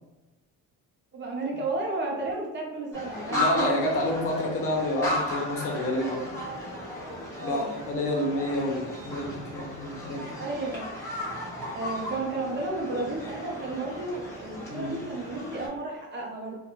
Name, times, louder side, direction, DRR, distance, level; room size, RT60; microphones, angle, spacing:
voice 1, 1.1-4.1 6.4-6.6 7.4-7.7 10.4-10.9 11.7-16.6, right 2 dB, 35° right, -1 dB, 0.6 m, -32 dB
sound 1, 2.9-15.7, left 1 dB, 10° left, 1.1 m, -35 dB
voice 2, 3.3-6.3 7.4-10.3 14.7-15.0, left 1 dB, 45° left, -1 dB, 0.7 m, -29 dB
2.5 x 2.2 x 3.0 m, 1.1 s
cardioid pair, 120°, 31 cm